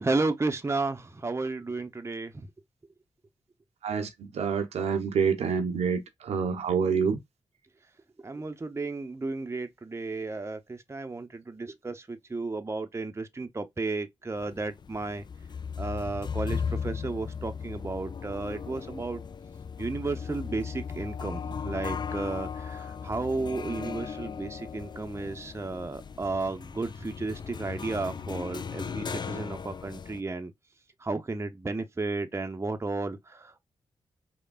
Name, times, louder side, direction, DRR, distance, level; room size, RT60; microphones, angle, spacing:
voice 1, 0.0-2.5 8.2-15.2 15.8-19.2 19.8-30.5 31.0-33.6, right 3 dB, 25° right, 0.6 m, -33 dB
voice 2, 3.8-7.2, right 6 dB, 80° right, 0.6 m, -27 dB
sound 1, 14.4-30.2, left 6 dB, 40° left, 0.4 m, -37 dB
3.2 x 2.1 x 2.3 m
supercardioid pair, 40°, 11 cm